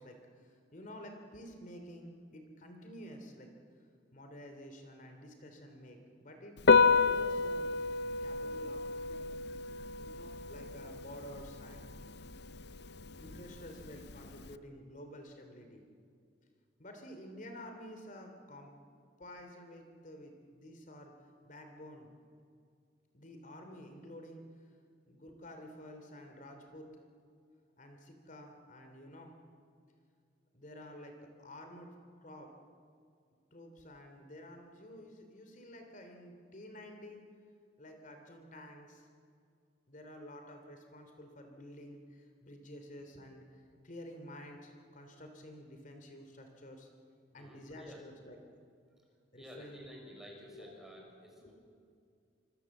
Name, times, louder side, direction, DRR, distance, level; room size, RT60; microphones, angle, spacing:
voice 1, 0.0-3.5 4.1-7.7 8.2-9.4 10.0-12.0 13.2-15.8 16.8-18.8 19.2-21.1 21.4-22.1 23.1-24.4 25.1-26.9 27.8-29.3 30.5-31.9 32.2-32.5 33.5-37.2 37.8-39.1 39.9-43.5 43.8-46.9 47.3-48.4 49.3-49.9 50.5-50.7 50.9-51.1 51.4-51.5, equal, 45° left, 5 dB, 3.1 m, -50 dB
Piano, 6.6-14.6, left 5 dB, 60° left, 0.7 m, -31 dB
voice 2, 47.3-48.0 49.3-51.5, equal, ahead, -2 dB, 6.3 m, -52 dB
25.5 x 25.5 x 7.3 m, 2.3 s
head